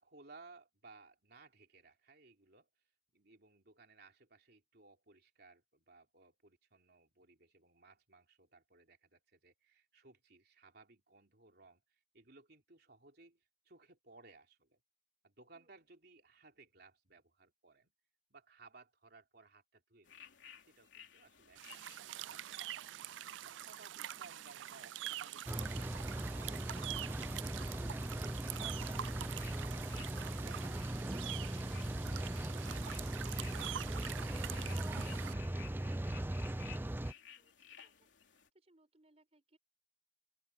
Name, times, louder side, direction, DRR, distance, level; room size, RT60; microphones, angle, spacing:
voice 1, 0.0-2.7 3.1-14.8 15.2-17.9 18.3-20.2 20.6-22.9 23.4-34.4 34.6-36.0, right 3 dB, 60° right, 3.4 m, -62 dB
voice 2, 15.5-15.9 37.3-39.6, right 2 dB, 35° right, 5.1 m, -72 dB
sound 1, 20.0-38.5, left 8 dB, 90° left, 3.3 m, -59 dB
sound 2, 21.6-35.3, right 12 dB, 85° right, 0.4 m, -45 dB
Rain, 25.5-37.1, right 1 dB, 10° right, 0.5 m, -39 dB
open air
head